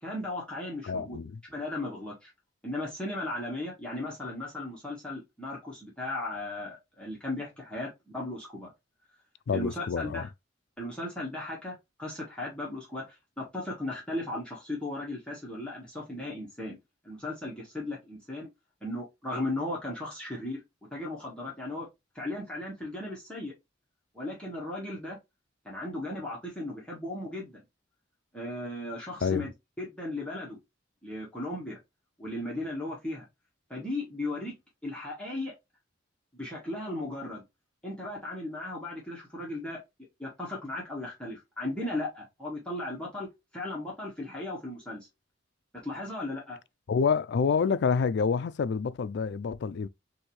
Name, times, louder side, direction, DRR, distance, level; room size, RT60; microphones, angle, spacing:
voice 1, 0.0-1.2 1.5-2.3 2.6-8.7 9.5-10.3 10.8-16.8 17.0-18.5 18.8-20.6 20.9-21.9 22.1-23.5 24.1-25.2 25.6-27.6 28.3-29.5 29.8-30.6 31.0-31.8 32.2-33.2 33.7-34.5 34.8-35.5 36.3-37.4 37.8-39.8 40.2-45.1 45.8-46.6, left 1 dB, 5° left, 1.4 m, -36 dB
voice 2, 0.8-1.3 9.5-10.3 29.2-29.5 46.9-49.9, left 5 dB, 60° left, 0.4 m, -27 dB
6.3 x 2.7 x 3.1 m
head